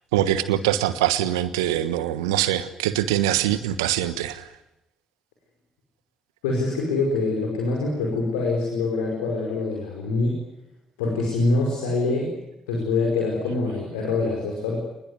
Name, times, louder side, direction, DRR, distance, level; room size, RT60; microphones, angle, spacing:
voice 1, 0.1-4.5, right 12 dB, 80° right, 13 dB, 1.4 m, -23 dB
voice 2, 6.4-10.4 11.0-12.3 12.7-14.8, left 3 dB, 75° left, 0 dB, 5.1 m, -24 dB
26.0 x 20.5 x 9.6 m, 0.87 s
figure-of-eight pair, 40°, 2 cm